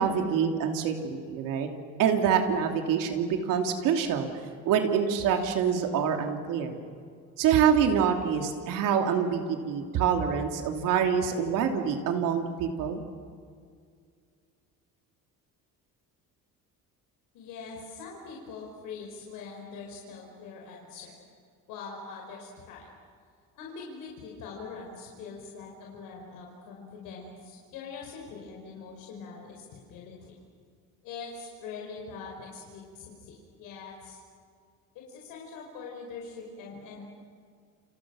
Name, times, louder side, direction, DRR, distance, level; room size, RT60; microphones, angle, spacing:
voice 1, 0.0-1.7 2.0-4.3 4.6-6.8 7.4-13.0, right 7 dB, 80° right, 4 dB, 3.1 m, -26 dB
voice 2, 17.3-21.1 21.7-22.9 23.5-30.3 31.0-34.2 34.9-37.0, left 5 dB, 90° left, -1 dB, 5.3 m, -43 dB
29.5 x 29.0 x 6.4 m, 2.2 s
cardioid pair, 165°, 32 cm